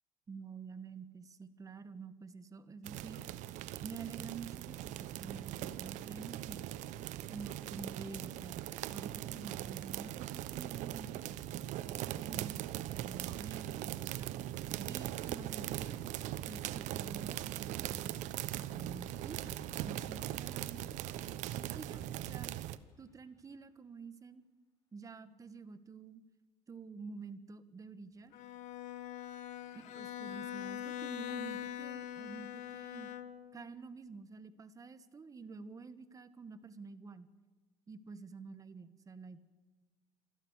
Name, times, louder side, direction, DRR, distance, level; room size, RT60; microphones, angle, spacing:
voice 1, 0.3-3.2 3.8-6.7 7.3-8.7 8.9-14.3 14.8-16.0 16.4-20.8 21.7-22.5 23.0-24.4 24.9-26.2 26.7-28.3 29.7-33.1 33.5-37.3 37.9-39.4, right 4 dB, 25° right, 13 dB, 1.4 m, -49 dB
sound 1, 2.8-22.8, right 13 dB, 70° right, 0.9 m, -40 dB
sound 2, 15.6-23.0, left 2 dB, 25° left, 5.1 m, -59 dB
Bowed string instrument, 28.3-33.6, left 11 dB, 70° left, 1.5 m, -43 dB
27.5 x 12.0 x 8.2 m, 1.3 s
cardioid pair, 110°, 13 cm